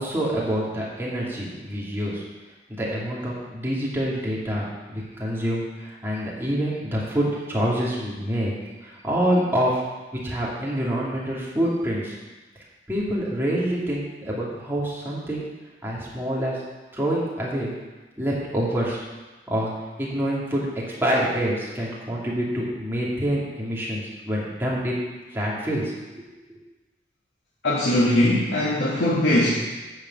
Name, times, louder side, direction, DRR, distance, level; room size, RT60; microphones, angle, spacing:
voice 1, 0.0-2.2 2.7-8.5 8.8-9.8 10.1-12.2 12.9-15.5 15.8-16.6 16.9-17.8 18.2-19.0 19.5-19.7 20.0-25.0 25.3-26.6, equal, 15° right, -6 dB, 2.6 m, -26 dB
voice 2, 27.6-29.5, left 1 dB, 85° left, -6 dB, 1.7 m, -20 dB
10.5 x 5.1 x 7.8 m, 1.2 s
head